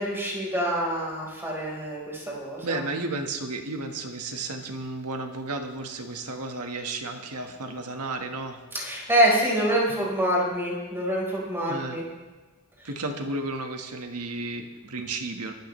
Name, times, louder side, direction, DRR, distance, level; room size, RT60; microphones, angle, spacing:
voice 1, 0.0-2.8 8.7-12.0, right 1 dB, 10° right, -3 dB, 4.5 m, -26 dB
voice 2, 2.6-8.6 9.9-10.0 11.6-12.0 12.8-15.5, right 2 dB, 85° right, 4 dB, 1.7 m, -33 dB
23.0 x 13.0 x 3.3 m, 1.2 s
head